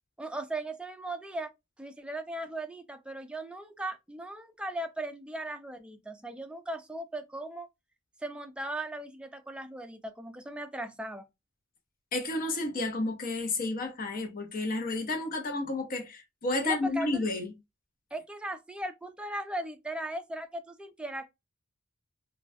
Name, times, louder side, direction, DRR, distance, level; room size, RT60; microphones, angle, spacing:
voice 1, 0.2-1.5 1.8-7.7 8.2-11.3 16.6-17.2 18.1-21.3, right 1 dB, 5° right, 0.3 m, -38 dB
voice 2, 12.1-17.5, left 2 dB, 45° left, 0.7 m, -31 dB
3.0 x 2.3 x 2.6 m
head